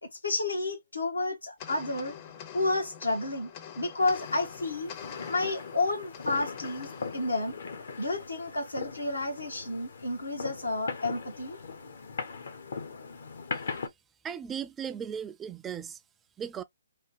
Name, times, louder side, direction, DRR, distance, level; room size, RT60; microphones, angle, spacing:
voice 1, 0.0-2.1 2.5-4.9 5.3-7.6 8.0-11.6, left 2 dB, 85° left, 1.4 m, -31 dB
sound 1, 1.6-8.2, left 8 dB, 35° left, 0.7 m, -46 dB
sound 2, 4.0-13.9, left 5 dB, 60° left, 0.9 m, -40 dB
voice 2, 14.2-16.0 16.4-16.6, right 8 dB, 15° right, 0.3 m, -36 dB
3.4 x 2.5 x 2.8 m
figure-of-eight pair, 140°, 0 cm